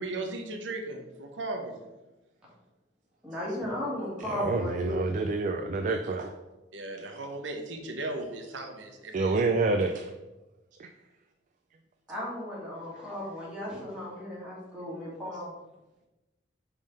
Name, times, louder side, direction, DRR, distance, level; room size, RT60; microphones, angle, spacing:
voice 1, 0.0-1.7 6.7-9.3, right 2 dB, 80° right, 3 dB, 0.9 m, -36 dB
voice 2, 3.2-5.0 12.1-15.6, left 1 dB, 5° right, -6 dB, 2.0 m, -35 dB
voice 3, 4.2-6.4 7.1-7.3 9.1-10.1 10.8-10.9 12.9-13.0, right 3 dB, 40° right, 5 dB, 0.4 m, -28 dB
5.3 x 3.5 x 5.4 m, 1.0 s
head